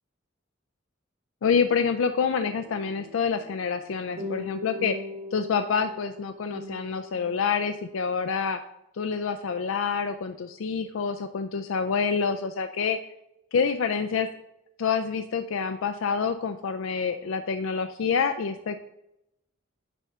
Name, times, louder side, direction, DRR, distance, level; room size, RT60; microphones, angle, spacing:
voice 1, 1.4-5.0 5.3-8.6 9.0-13.0 13.5-14.3 14.8-18.8, left 6 dB, 85° left, 8 dB, 0.4 m, -27 dB
sound 1, 2.3-8.0, left 2 dB, 80° right, 2.2 m, -41 dB
10.0 x 3.6 x 5.3 m, 0.88 s
head